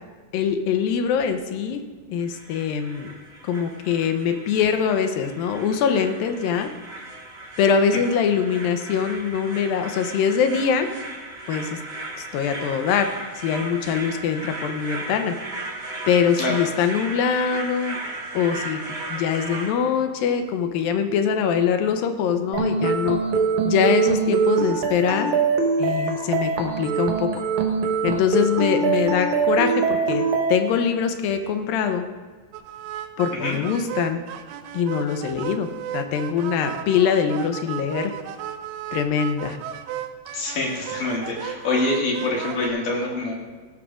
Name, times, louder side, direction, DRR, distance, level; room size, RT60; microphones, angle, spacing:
voice 1, 0.3-1.8 2.1-3.1 3.4-6.7 7.6-10.9 11.5-11.8 12.2-15.3 16.1-18.0 18.3-18.8 19.1-23.2 23.6-25.3 25.8-27.3 28.0-32.1 33.2-34.2 34.7-35.7 35.9-38.1 38.9-39.6, left 7 dB, 90° left, 7 dB, 2.6 m, -23 dB
sound 1, 2.2-19.7, right 2 dB, 35° right, 1.0 m, -36 dB
sound 2, 22.5-30.5, right 5 dB, 65° right, 2.2 m, -23 dB
sound 3, 32.5-42.7, right 10 dB, 90° right, 2.4 m, -34 dB
voice 2, 40.3-43.3, left 2 dB, 65° left, -2 dB, 3.5 m, -25 dB
17.5 x 13.0 x 2.5 m, 1.4 s
omnidirectional pair, 4.1 m